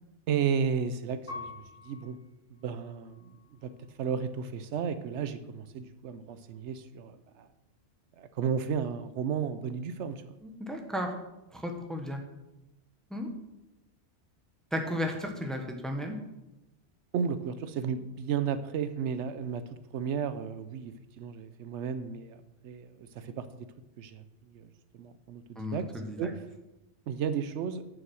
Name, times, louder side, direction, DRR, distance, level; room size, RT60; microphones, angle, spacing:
voice 1, 0.3-2.2 2.5-7.5 8.2-10.4 17.1-23.5 24.0-25.4 25.7-25.9 26.2-26.4 27.1-27.8, right 7 dB, 80° right, 11 dB, 0.9 m, -33 dB
Piano, 1.3-4.0 4.6-5.4, left 4 dB, 45° left, 4.0 m, -48 dB
voice 2, 10.4-11.1 11.5-12.2 13.1-13.3 14.7-16.2 25.5-26.3, left 1 dB, ahead, 3 dB, 1.0 m, -34 dB
7.2 x 6.3 x 6.2 m, 0.94 s
omnidirectional pair, 1.2 m